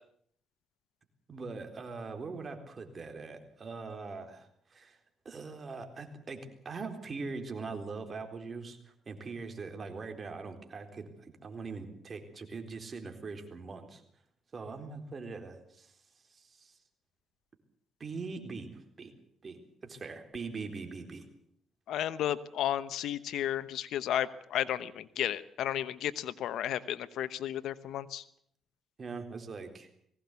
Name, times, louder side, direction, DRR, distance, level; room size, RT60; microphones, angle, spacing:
voice 1, 1.3-5.0 5.2-14.0 14.5-16.0 16.3-16.8 18.0-19.1 19.4-21.2 29.0-29.9, right 4 dB, 40° right, 6 dB, 3.9 m, -42 dB
voice 2, 21.9-28.2, left 11 dB, 80° left, 16 dB, 1.0 m, -33 dB
20.5 x 17.0 x 8.3 m, 0.66 s
cardioid pair, 90°, 0 cm